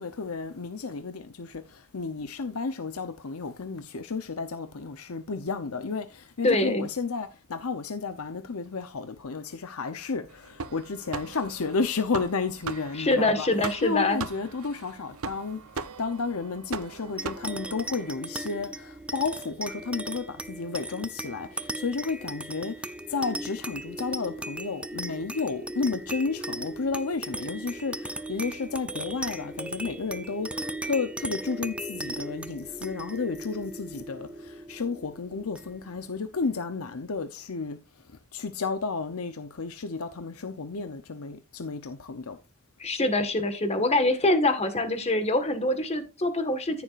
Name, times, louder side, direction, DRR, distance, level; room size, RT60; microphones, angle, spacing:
voice 1, 0.0-1.6 1.9-13.5 13.8-15.6 16.0-22.7 23.1-34.3 34.7-37.8 38.3-42.4, left 4 dB, 75° left, 0.8 m, -32 dB
voice 2, 6.4-6.9 13.0-14.2 42.8-46.8, left 2 dB, 30° left, 1.6 m, -24 dB
sound 1, 10.3-18.1, right 4 dB, 70° right, 0.8 m, -39 dB
sound 2, 17.2-36.0, right 1 dB, 5° right, 0.5 m, -37 dB
14.0 x 7.0 x 2.5 m
head